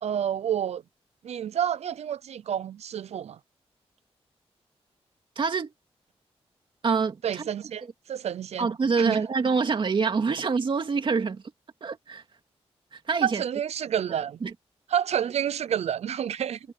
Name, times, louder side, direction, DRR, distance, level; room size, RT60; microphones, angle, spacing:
voice 1, 0.0-0.8 1.2-3.4 7.2-7.8 8.1-8.7 9.0-9.2 13.2-14.4 14.9-16.6, right 9 dB, 85° right, 0.7 m, -29 dB
voice 2, 5.4-5.7 6.8-7.5 8.6-11.4 11.8-12.2 12.9-13.4 14.4-14.5, right 5 dB, 50° right, 2.2 m, -26 dB
wide cardioid pair, 120°, 11 cm